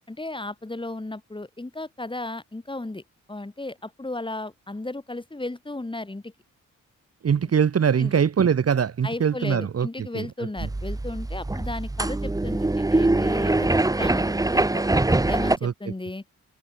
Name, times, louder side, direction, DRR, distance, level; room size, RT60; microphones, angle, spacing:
voice 1, 0.1-3.0 3.3-6.3 8.0-8.1 9.0-14.8 15.3-16.2, left 2 dB, 15° left, 5.3 m, -34 dB
voice 2, 7.2-10.3 15.6-15.7, right 7 dB, 50° right, 1.3 m, -22 dB
sound 1, 10.6-15.6, right 2 dB, 10° right, 0.9 m, -23 dB
wide cardioid pair, 130°, 31 cm